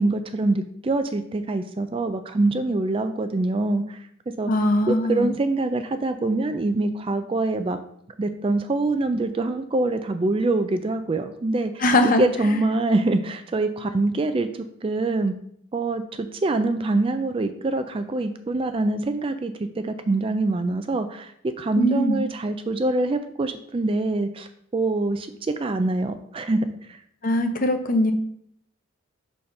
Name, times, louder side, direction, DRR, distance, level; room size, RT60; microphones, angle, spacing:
voice 1, 0.0-4.0 4.4-4.5 4.9-7.8 8.2-15.3 15.7-25.3 25.6-27.0, right 2 dB, 25° right, 9 dB, 0.3 m, -25 dB
voice 2, 4.5-5.3 11.8-12.6 21.8-22.2 27.2-28.1, left 1 dB, 40° left, 6 dB, 0.7 m, -21 dB
4.9 x 4.1 x 5.7 m, 0.69 s
head